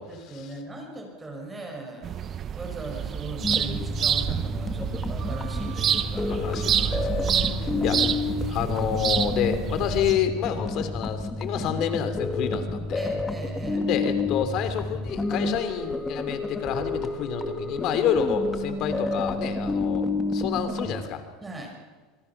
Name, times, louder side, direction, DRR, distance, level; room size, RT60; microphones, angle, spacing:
voice 1, 0.0-2.3 2.5-6.3 7.2-8.3 12.9-13.9 21.4-21.8, right 2 dB, 15° right, 3 dB, 5.8 m, -39 dB
sound 1, 2.0-10.1, right 9 dB, 35° right, 1.0 m, -28 dB
sound 2, 3.4-21.0, left 3 dB, 15° left, 2.0 m, -30 dB
voice 2, 6.3-7.5 7.8-8.0 8.5-13.0 13.8-21.2, left 8 dB, 55° left, 9 dB, 3.1 m, -29 dB
27.0 x 20.5 x 6.0 m, 1.4 s
supercardioid pair, 115°, 0 cm